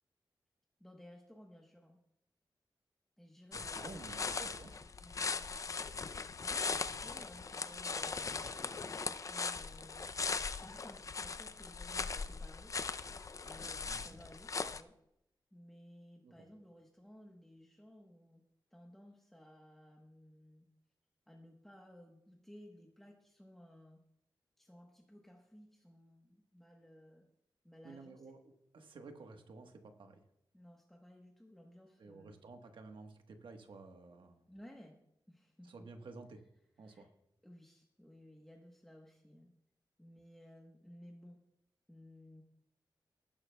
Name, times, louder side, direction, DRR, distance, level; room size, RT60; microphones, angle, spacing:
voice 1, 0.8-2.0 3.2-4.3 5.0-12.8 13.4-15.0 15.5-18.4 18.7-20.7 21.3-24.0 24.6-27.3 27.6-28.2 30.5-32.4 34.5-35.0 35.3-35.7 36.8-37.1 37.4-39.5 40.0-41.4 41.9-42.4, equal, 5° left, 0 dB, 1.1 m, -58 dB
sound 1, 3.5-14.8, left 4 dB, 40° left, 0.5 m, -39 dB
voice 2, 3.5-4.7 13.9-14.2 16.2-16.3 27.8-30.2 32.0-34.4 35.6-36.4 36.8-37.1, right 3 dB, 80° right, 5 dB, 1.3 m, -52 dB
18.5 x 10.5 x 2.3 m, 0.79 s
wide cardioid pair, 140°, 8 cm